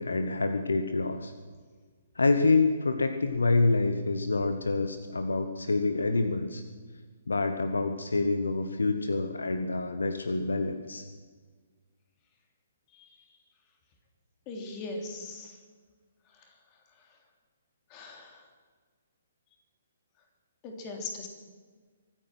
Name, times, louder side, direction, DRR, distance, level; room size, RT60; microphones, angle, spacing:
voice 1, 0.0-1.3 2.2-6.6 7.3-11.0, left 3 dB, 70° left, 9 dB, 1.1 m, -27 dB
voice 2, 14.5-15.6 17.9-18.4 20.6-21.3, left 3 dB, 25° left, 3 dB, 3.1 m, -39 dB
24.5 x 9.2 x 6.2 m, 1.5 s
figure-of-eight pair, 125°, 0 cm